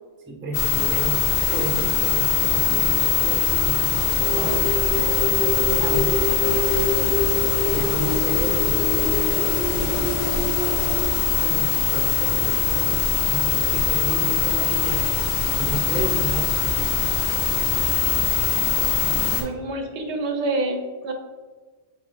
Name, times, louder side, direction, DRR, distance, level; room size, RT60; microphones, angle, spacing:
voice 1, 0.3-1.2 1.5-4.7 5.6-6.4 7.6-10.1 11.4-15.0 15.5-16.5, right 1 dB, 15° right, 1 dB, 0.4 m, -32 dB
sound 1, 0.5-19.4, left 7 dB, 75° left, 0.9 m, -22 dB
sound 2, 4.2-11.0, left 1 dB, 55° left, 1.4 m, -27 dB
voice 2, 19.3-21.1, right 2 dB, 80° right, 3 dB, 1.0 m, -27 dB
5.4 x 3.6 x 2.5 m, 1.4 s
omnidirectional pair, 1.2 m